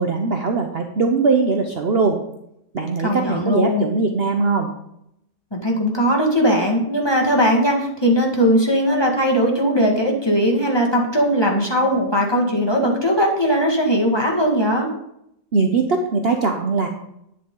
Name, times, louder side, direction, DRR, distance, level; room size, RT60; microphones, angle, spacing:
voice 1, 0.0-2.2 2.7-4.7 15.5-16.9, right 4 dB, 45° right, 4 dB, 1.0 m, -20 dB
voice 2, 3.0-3.9 5.5-14.9, equal, 15° left, 0 dB, 1.8 m, -19 dB
11.5 x 9.9 x 3.9 m, 0.78 s
omnidirectional pair, 1.8 m